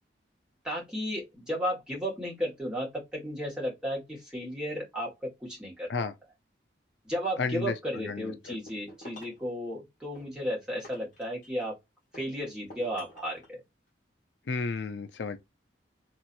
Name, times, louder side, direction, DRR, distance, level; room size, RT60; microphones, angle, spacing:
voice 1, 0.6-5.9 7.0-11.8 12.1-13.6, equal, 5° right, 1.7 m, -34 dB
voice 2, 7.4-8.6 14.5-15.4, left 4 dB, 75° left, 0.5 m, -33 dB
sound 1, 8.4-9.5 10.1-11.7 12.1-13.5, left 1 dB, 45° left, 1.7 m, -50 dB
3.1 x 2.9 x 2.5 m
head